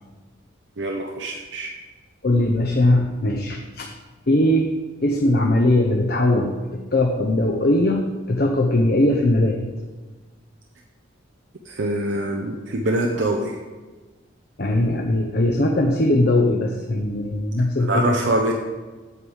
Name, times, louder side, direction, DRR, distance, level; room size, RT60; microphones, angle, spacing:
voice 1, 0.8-1.7 11.7-13.6 17.8-18.5, right 1 dB, 65° right, 2 dB, 0.7 m, -24 dB
voice 2, 2.2-3.9 4.3-4.8 5.0-9.6 13.1-13.2 14.6-18.4, left 1 dB, 50° left, 1 dB, 0.7 m, -20 dB
8.2 x 4.8 x 7.2 m, 1.3 s
head